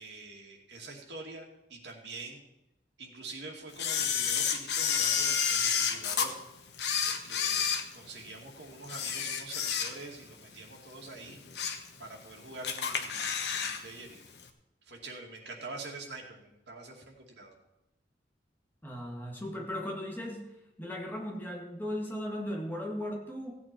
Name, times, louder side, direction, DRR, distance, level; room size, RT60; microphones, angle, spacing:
voice 1, 0.0-2.4 3.0-6.3 7.0-11.4 12.0-14.2 14.9-17.5, right 3 dB, 80° right, 0 dB, 2.5 m, -46 dB
Camera, 3.8-6.3 6.7-8.4 8.8-10.2 10.6-10.8 11.3-11.9 12.2-12.3 12.6-13.8 14.1-14.2, left 7 dB, 75° left, 1.2 m, -30 dB
voice 2, 18.8-20.5 20.8-23.5, left 1 dB, 10° left, -1 dB, 2.0 m, -37 dB
16.5 x 8.6 x 4.5 m, 0.90 s
head